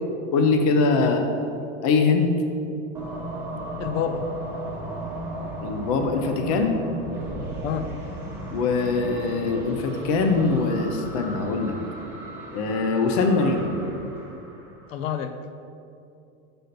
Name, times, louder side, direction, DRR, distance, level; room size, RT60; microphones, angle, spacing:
voice 1, 0.3-1.2 1.8-2.3 5.6-6.8 8.5-11.7 12.5-13.7, left 4 dB, 30° left, 4 dB, 0.4 m, -22 dB
sound 1, 2.9-14.9, right 1 dB, 5° right, 0.8 m, -35 dB
voice 2, 3.8-4.3 7.6-7.9 14.9-15.4, left 8 dB, 85° left, 8 dB, 0.7 m, -28 dB
6.4 x 4.2 x 6.5 m, 2.6 s
supercardioid pair, 175°, 39 cm